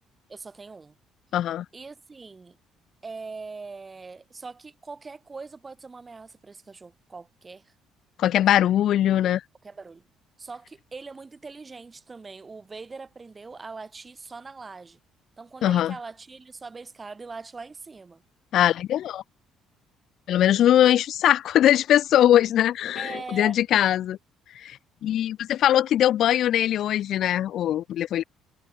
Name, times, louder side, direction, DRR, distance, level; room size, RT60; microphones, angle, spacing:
voice 1, 0.3-1.0 1.7-2.6 3.0-7.7 8.3-8.4 9.6-10.1 10.4-15.0 15.4-18.2 23.0-23.7, right 4 dB, 30° right, 5.3 m, -41 dB
voice 2, 1.3-1.6 8.2-9.4 15.6-15.9 18.5-19.2 20.3-24.2 24.6-28.2, left 11 dB, 65° left, 0.7 m, -21 dB
supercardioid pair, 65°, 0 cm